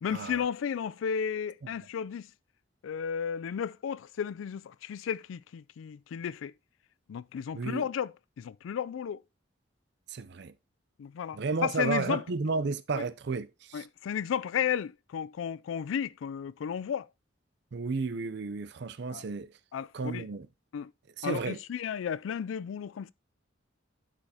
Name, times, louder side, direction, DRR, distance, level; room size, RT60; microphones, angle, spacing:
voice 1, 0.0-2.3 2.8-6.5 7.1-9.2 11.0-12.2 12.9-13.1 13.7-17.1 19.1-19.3 19.7-20.3 20.7-20.9 21.2-23.1, left 8 dB, 90° left, 0.3 m, -33 dB
voice 2, 7.5-7.8 10.1-10.5 11.3-13.8 17.7-19.5 19.9-20.5 21.2-21.6, right 4 dB, 60° right, 0.5 m, -32 dB
11.5 x 5.0 x 2.8 m
head